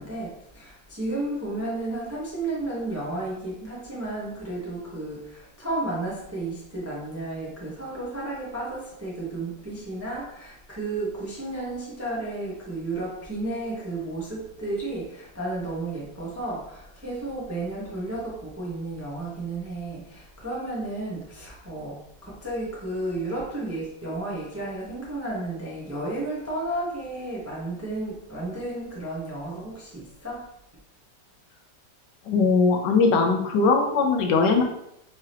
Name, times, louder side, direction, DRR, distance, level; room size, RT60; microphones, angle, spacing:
voice 1, 0.0-30.4, right 2 dB, 15° right, -5 dB, 0.5 m, -32 dB
voice 2, 32.3-34.6, left 4 dB, 75° left, 3 dB, 1.1 m, -20 dB
4.6 x 2.8 x 3.3 m, 0.80 s
omnidirectional pair, 2.0 m